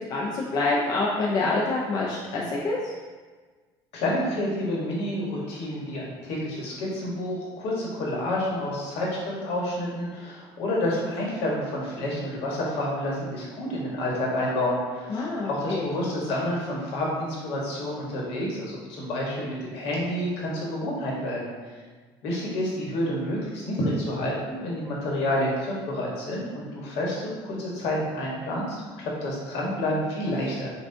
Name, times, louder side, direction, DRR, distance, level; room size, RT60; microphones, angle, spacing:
voice 1, 0.0-2.9 15.1-15.8, left 3 dB, 40° left, -4 dB, 0.5 m, -26 dB
voice 2, 3.9-21.5 22.2-30.7, left 1 dB, 70° left, -4 dB, 1.2 m, -29 dB
5.9 x 2.3 x 2.6 m, 1.4 s
cardioid pair, 155°, 10 cm